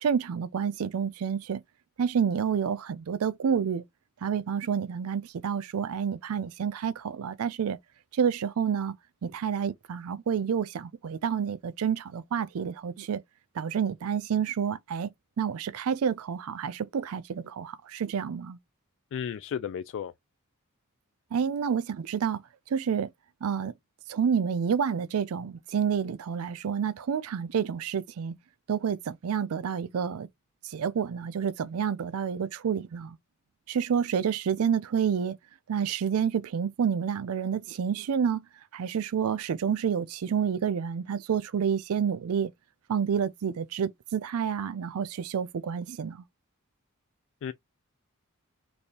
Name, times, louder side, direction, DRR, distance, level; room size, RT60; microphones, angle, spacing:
voice 1, 0.0-1.6 2.0-3.8 4.2-7.8 8.1-9.0 9.2-13.2 13.6-15.1 15.4-18.6 21.3-22.4 22.7-23.1 23.4-23.7 24.1-28.4 28.7-30.3 30.6-33.2 33.7-35.4 35.7-38.4 38.7-42.5 42.9-46.2, right 7 dB, 75° right, 0.4 m, -29 dB
voice 2, 19.1-20.1 47.4-47.5, left 8 dB, 60° left, 0.3 m, -33 dB
4.2 x 3.4 x 2.8 m
head